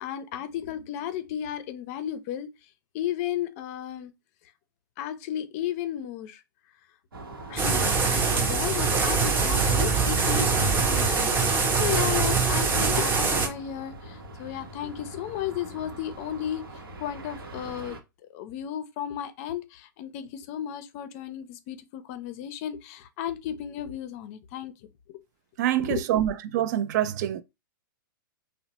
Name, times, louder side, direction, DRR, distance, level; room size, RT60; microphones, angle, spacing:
voice 1, 0.0-2.5 2.9-4.1 5.0-6.4 7.5-18.0 18.3-24.9 25.8-26.0, left 10 dB, 40° left, 0.4 m, -34 dB
sound 1, 7.1-18.0, right 2 dB, 85° right, 0.8 m, -41 dB
sound 2, 7.6-13.5, right 4 dB, 20° right, 0.7 m, -23 dB
voice 2, 25.6-27.4, right 12 dB, 50° right, 0.4 m, -25 dB
2.8 x 2.0 x 2.9 m
hypercardioid pair, 125°, 12 cm